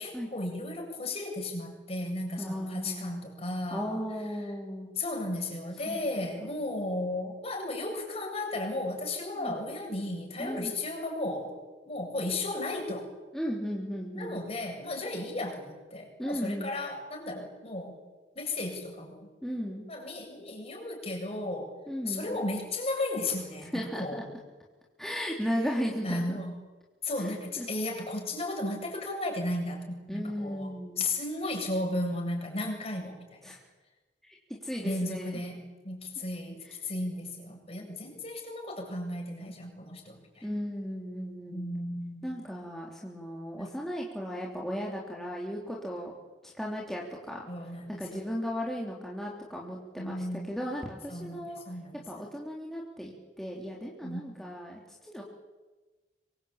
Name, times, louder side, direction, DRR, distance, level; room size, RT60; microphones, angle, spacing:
voice 1, 0.0-4.0 5.0-11.6 11.9-13.1 14.1-18.0 18.3-19.3 19.9-21.7 22.1-24.2 26.0-26.5 27.0-30.7 31.0-33.6 34.8-40.5 41.5-42.3 43.6-43.7 47.5-48.3 50.0-50.5 51.1-52.2 54.0-54.2, left 2 dB, 35° left, 1 dB, 7.7 m, -34 dB
voice 2, 2.4-3.2 3.7-4.9 5.8-6.0 9.4-9.6 10.4-10.7 13.3-14.4 16.2-16.7 19.4-19.9 21.9-22.4 23.7-24.2 25.0-26.4 27.2-27.7 30.1-31.0 33.4-33.6 34.2-35.4 36.6-36.7 37.8-37.9 40.4-41.7 42.2-46.1 46.4-47.5 47.9-51.6 52.1-55.2, equal, ahead, -3 dB, 3.4 m, -36 dB
26.5 x 24.0 x 8.8 m, 1.2 s
head